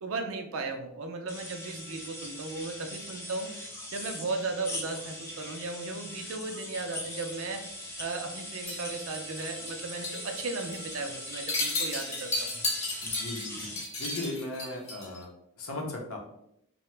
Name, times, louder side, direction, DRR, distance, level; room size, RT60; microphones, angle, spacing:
voice 1, 0.0-3.5 3.9-7.6 8.0-12.6, right 3 dB, 65° right, 5 dB, 0.4 m, -36 dB
sound 1, 1.3-13.8, left 1 dB, 10° left, 0.3 m, -41 dB
sound 2, 8.7-9.8 10.0-10.3 10.6-11.0 11.3-15.2, left 2 dB, 30° left, 0.8 m, -34 dB
voice 2, 13.0-13.7 14.0-15.3 15.6-16.2, left 2 dB, 70° left, 1 dB, 0.6 m, -37 dB
2.8 x 2.1 x 3.1 m, 0.77 s
head